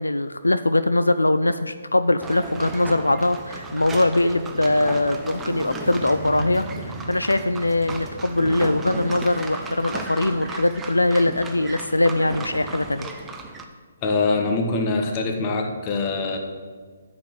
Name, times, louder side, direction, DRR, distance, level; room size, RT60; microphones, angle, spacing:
voice 1, 0.0-13.1, left 2 dB, 90° left, 11 dB, 0.4 m, -22 dB
Motorcycle, 1.7-11.4, equal, 10° left, 1.8 m, -39 dB
sound 1, 2.2-13.6, right 3 dB, 10° right, 0.8 m, -36 dB
voice 2, 14.0-16.4, left 3 dB, 30° left, 3 dB, 1.4 m, -23 dB
9.2 x 5.1 x 7.7 m, 1.5 s
figure-of-eight pair, 135°, 0 cm